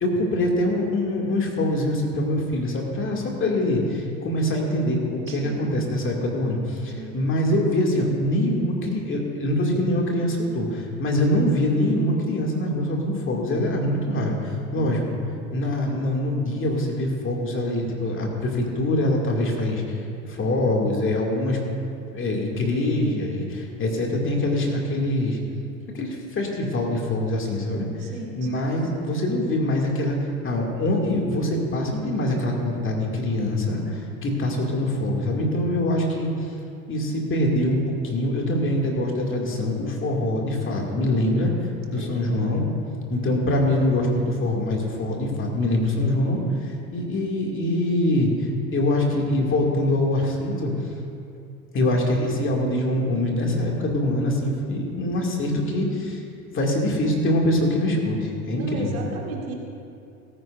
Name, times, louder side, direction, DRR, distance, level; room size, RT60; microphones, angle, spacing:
voice 1, 0.0-15.0 15.5-20.0 20.3-21.6 22.1-25.4 25.9-27.9 28.4-30.2 30.4-36.3 36.9-37.8 38.0-41.5 41.9-42.6 43.1-50.7 51.7-56.2 56.5-59.0, left 1 dB, 30° left, -1 dB, 2.4 m, -24 dB
voice 2, 5.3-5.7 6.9-7.2 14.7-15.2 28.0-28.7 42.0-42.6 58.6-59.5, right 3 dB, 70° right, -1 dB, 2.1 m, -36 dB
17.0 x 15.0 x 2.6 m, 2.5 s
hypercardioid pair, 80°, 43 cm